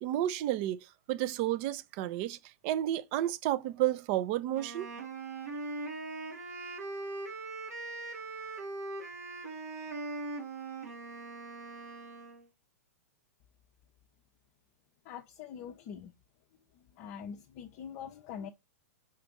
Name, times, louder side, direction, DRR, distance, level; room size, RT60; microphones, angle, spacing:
voice 1, 0.0-2.4 2.6-4.9, right 13 dB, 40° right, 0.4 m, -31 dB
Wind instrument woodwind instrument, 4.5-12.5, right 3 dB, 75° right, 1.1 m, -41 dB
voice 2, 15.0-16.1 16.7-18.5, left 7 dB, 40° left, 0.5 m, -44 dB
4.4 x 2.5 x 4.5 m
figure-of-eight pair, 105°, 9 cm